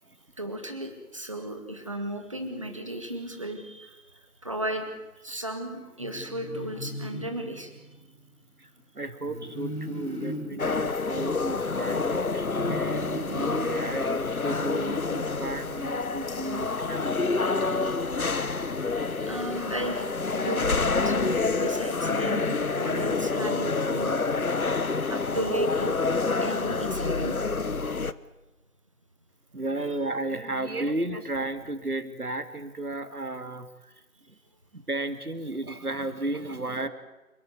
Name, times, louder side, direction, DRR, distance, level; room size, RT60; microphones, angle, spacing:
voice 1, 0.4-4.9 5.2-7.7 17.6-17.7 19.3-20.7 21.0-24.1 25.0-26.0 26.4-27.3, right 1 dB, 20° right, 5 dB, 2.0 m, -35 dB
sound 1, 6.0-8.1 9.2-12.0 12.5-14.7, equal, 85° left, 5.9 m, -38 dB
voice 2, 8.9-18.3 19.1-19.2 29.5-33.9 34.3-34.4 34.7-36.9, right 2 dB, 80° right, 10 dB, 2.7 m, -34 dB
sound 2, 10.6-28.1, left 4 dB, 70° left, 1.2 m, -28 dB
28.5 x 13.5 x 9.6 m, 1.1 s
figure-of-eight pair, 170°, 44 cm